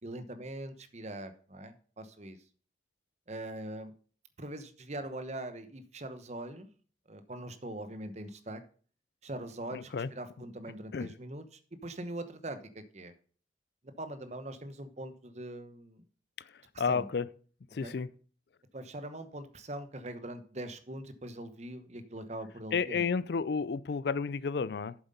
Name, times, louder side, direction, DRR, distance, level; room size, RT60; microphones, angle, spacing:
voice 1, 0.0-2.4 3.3-3.9 4.4-6.7 7.1-8.6 9.2-11.4 11.8-13.1 14.0-16.0 16.9-17.1 17.8-18.0 18.7-23.0, right 1 dB, 35° right, 1.0 m, -42 dB
voice 2, 9.7-10.1 10.9-11.1 16.8-17.3 17.7-18.1 22.7-25.0, left 5 dB, 60° left, 0.4 m, -31 dB
8.0 x 7.5 x 5.4 m
head